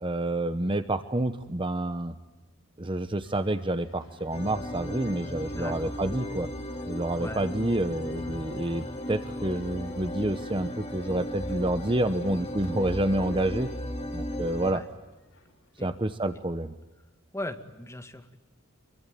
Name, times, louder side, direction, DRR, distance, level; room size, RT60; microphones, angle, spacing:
voice 1, 0.0-2.1 2.8-6.5 6.9-13.7 14.1-14.8 15.8-16.7, right 1 dB, 25° right, 10 dB, 0.9 m, -28 dB
sound 1, 3.2-15.9, left 1 dB, 75° left, 7.5 m, -55 dB
sound 2, 4.3-14.7, left 1 dB, 30° left, 2.5 m, -36 dB
voice 2, 5.5-5.9 7.2-7.5 14.7-14.9 15.8-15.9 17.3-18.4, left 1 dB, 15° left, 6 dB, 2.0 m, -38 dB
27.0 x 23.0 x 9.2 m, 1.1 s
head